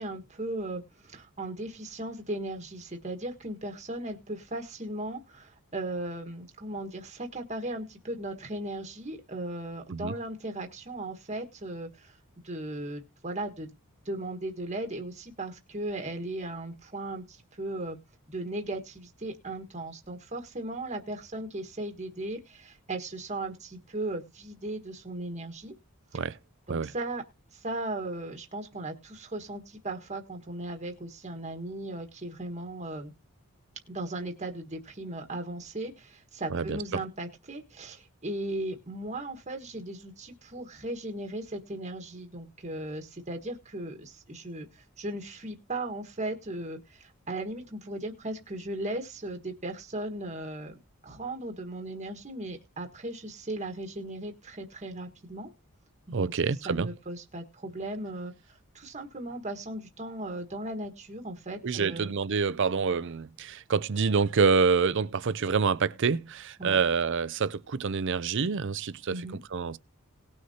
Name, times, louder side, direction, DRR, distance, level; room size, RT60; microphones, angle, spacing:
voice 1, 0.0-12.2 12.4-13.7 14.0-18.0 18.3-25.7 26.1-26.2 26.7-27.2 27.5-33.1 33.9-55.5 56.1-56.3 56.6-62.1 66.6-66.8 69.1-69.4, right 1 dB, 30° right, 1.4 m, -37 dB
voice 2, 56.1-56.9 61.6-69.2 69.5-69.8, right 5 dB, 55° right, 0.5 m, -27 dB
19.0 x 6.4 x 2.8 m
head